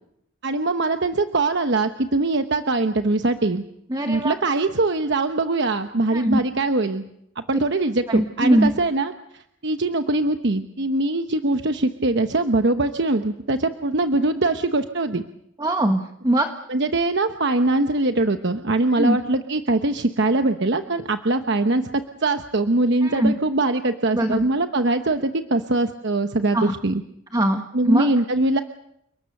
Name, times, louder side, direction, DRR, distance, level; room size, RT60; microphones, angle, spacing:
voice 1, 0.4-3.6 4.1-7.0 7.5-9.1 9.6-15.2 16.7-27.0 27.7-28.6, right 2 dB, 60° right, 7 dB, 1.0 m, -22 dB
voice 2, 3.9-4.3 6.1-6.4 8.1-8.7 15.6-16.5 19.0-19.2 23.0-23.3 24.1-24.4 26.5-26.7 27.3-28.1, right 1 dB, 20° right, 5 dB, 1.4 m, -21 dB
30.0 x 19.5 x 6.7 m, 0.75 s
head